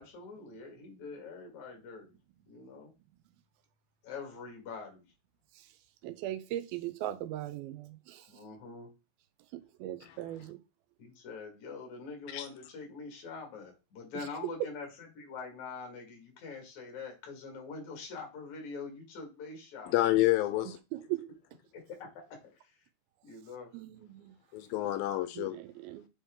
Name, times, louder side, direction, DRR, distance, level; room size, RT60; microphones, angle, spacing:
voice 1, 0.0-2.2 2.5-2.9 4.0-5.0 8.3-8.9 11.0-19.9 20.5-20.7 21.9-22.9 23.2-23.7, left 4 dB, 55° left, 3.3 m, -44 dB
voice 2, 6.0-8.3 9.5-10.6 21.1-21.2 23.7-24.3 25.4-26.1, right 14 dB, 85° right, 2.6 m, -39 dB
voice 3, 19.9-20.8 24.5-25.6, left 15 dB, 85° left, 2.3 m, -29 dB
7.1 x 4.4 x 3.7 m
omnidirectional pair, 4.2 m